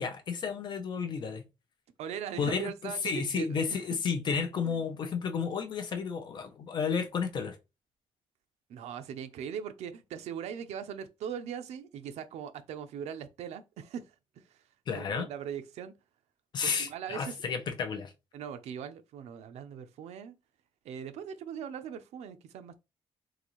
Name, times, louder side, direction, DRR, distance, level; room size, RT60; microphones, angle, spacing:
voice 1, 0.0-1.4 2.4-7.6 14.9-15.3 16.5-18.1, left 6 dB, 40° left, 0.6 m, -32 dB
voice 2, 2.0-3.9 4.6-4.9 8.7-14.6 14.9-15.9 16.6-17.4 18.3-20.3 20.8-22.8, right 8 dB, 85° right, 0.5 m, -40 dB
3.8 x 2.5 x 3.0 m
cardioid pair, 160°, 11 cm